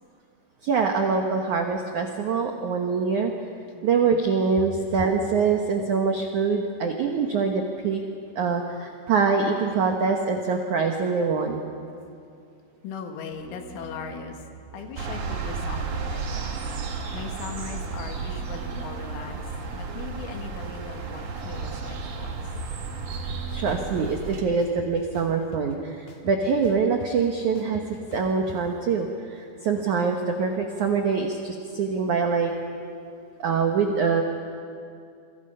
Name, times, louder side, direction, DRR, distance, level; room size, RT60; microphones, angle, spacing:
voice 1, 0.6-3.3 3.8-8.0 8.3-11.6 23.5-27.8 28.1-32.5 33.4-34.2, right 5 dB, 80° right, 3 dB, 1.7 m, -24 dB
voice 2, 12.8-14.4 14.7-16.6 17.1-19.4 19.7-22.3, left 6 dB, 80° left, 4 dB, 4.2 m, -39 dB
sound 1, 13.3-24.1, right 4 dB, 35° right, 4.7 m, -45 dB
sound 2, 15.0-24.4, right 5 dB, 50° right, 2.6 m, -33 dB
sound 3, 22.6-22.7 23.1-24.1 24.6-25.7 26.1-28.6, left 5 dB, 55° left, 2.4 m, -43 dB
28.5 x 25.0 x 5.6 m, 2.4 s
omnidirectional pair, 5.5 m